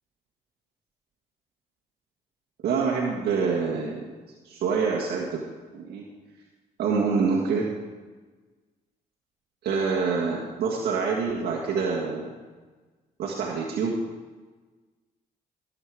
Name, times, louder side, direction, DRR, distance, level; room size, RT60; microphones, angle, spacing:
voice 1, 2.6-4.0 4.4-5.4 5.7-6.1 6.8-7.7 9.6-12.3 13.2-13.9, right 5 dB, 75° right, -3 dB, 1.7 m, -26 dB
17.0 x 7.8 x 4.8 m, 1.3 s
supercardioid pair, 70°, 17 cm